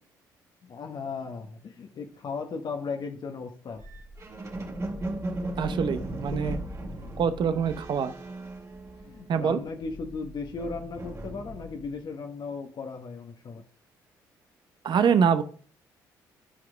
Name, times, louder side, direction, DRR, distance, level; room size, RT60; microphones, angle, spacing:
voice 1, 0.6-3.8 6.3-6.6 7.0-7.1 7.5-7.6 9.1-13.6, left 4 dB, 50° left, 4 dB, 1.1 m, -36 dB
sound 1, 3.8-9.4 9.7-11.9, right 1 dB, 30° right, 2.3 m, -37 dB
voice 2, 5.6-6.6 7.2-8.1 9.3-9.6 14.8-15.4, right 7 dB, 55° right, 11 dB, 0.8 m, -24 dB
11.5 x 4.9 x 3.4 m, 0.43 s
hypercardioid pair, 50°, 10 cm